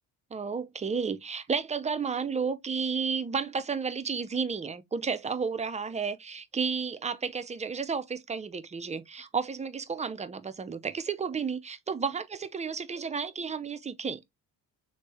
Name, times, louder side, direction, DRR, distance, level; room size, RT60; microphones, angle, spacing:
voice 1, 0.3-14.2, right 5 dB, 15° right, 0.4 m, -32 dB
3.3 x 2.6 x 3.2 m
hypercardioid pair, 50°, 47 cm